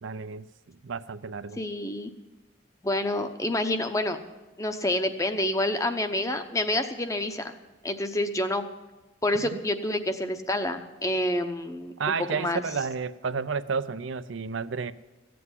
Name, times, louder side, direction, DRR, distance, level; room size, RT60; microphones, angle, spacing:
voice 1, 0.0-1.6 9.4-9.6 12.0-14.9, right 5 dB, 70° right, 13 dB, 0.5 m, -31 dB
voice 2, 1.6-2.1 2.8-4.2 4.6-7.6 7.8-8.6 9.2-12.6, left 1 dB, 15° left, 8 dB, 0.8 m, -28 dB
15.5 x 7.8 x 9.7 m, 1.1 s
head